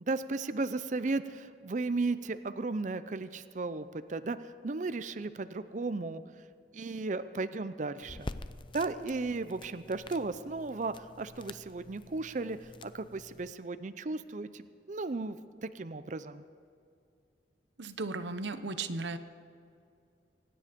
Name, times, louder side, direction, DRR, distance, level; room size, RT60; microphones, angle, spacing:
voice 1, 0.1-4.4 4.6-6.2 6.7-8.3 8.7-16.4, right 3 dB, 45° right, 12 dB, 0.5 m, -35 dB
sound 1, 8.0-13.5, left 2 dB, 30° left, 0.5 m, -47 dB
voice 2, 17.8-19.2, right 3 dB, 80° right, 10 dB, 0.9 m, -36 dB
24.5 x 10.0 x 5.2 m, 2.4 s
head